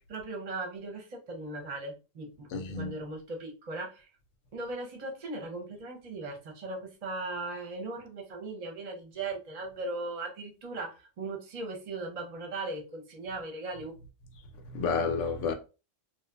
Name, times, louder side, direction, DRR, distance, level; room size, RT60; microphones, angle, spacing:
voice 1, 0.1-4.1 4.5-13.9, right 2 dB, 40° right, 0.6 m, -38 dB
voice 2, 2.5-2.9 14.7-15.5, left 5 dB, 80° left, 0.9 m, -30 dB
2.9 x 2.2 x 2.2 m
omnidirectional pair, 1.3 m